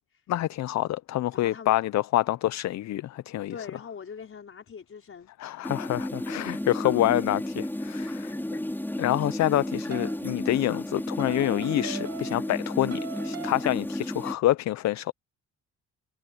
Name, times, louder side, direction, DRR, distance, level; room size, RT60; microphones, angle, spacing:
voice 1, 0.3-3.5 5.4-8.4 9.0-15.1, left 14 dB, 65° left, 0.6 m, -27 dB
voice 2, 1.3-1.7 3.5-5.3 8.2-8.6, left 6 dB, 45° left, 5.3 m, -42 dB
sound 1, 5.6-14.4, left 1 dB, 5° left, 5.0 m, -33 dB
sound 2, 9.9-10.2 11.2-12.6 12.9-13.8, right 9 dB, 55° right, 2.6 m, -40 dB
cardioid pair, 90°, 30 cm